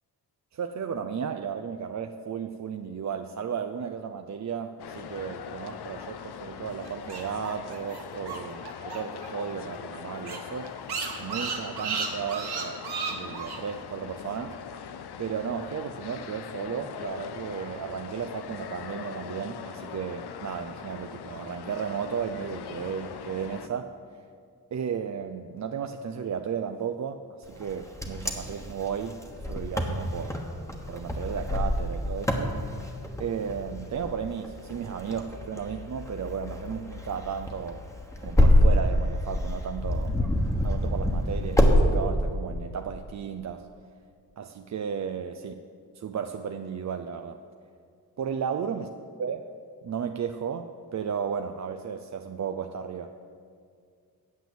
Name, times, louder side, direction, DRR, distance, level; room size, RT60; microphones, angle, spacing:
voice 1, 0.5-10.8 11.2-12.8 13.1-14.5 15.2-23.9 24.7-29.2 29.5-30.4 30.9-32.6 33.2-37.8 38.2-40.1 40.6-43.7 44.4-45.5 46.0-47.4 48.2-48.9 49.2-49.4 49.8-53.1, right 7 dB, 45° right, 7 dB, 0.5 m, -34 dB
sound 1, 4.8-23.7, left 7 dB, 80° left, 0.7 m, -41 dB
sound 2, 6.8-9.3 9.5-9.6 9.9-10.0 10.2-13.6, right 5 dB, 80° right, 1.6 m, -33 dB
Wind, 27.6-41.8, left 1 dB, 5° left, 1.3 m, -26 dB
9.4 x 7.7 x 7.8 m, 2.2 s
cardioid pair, 100°, 39 cm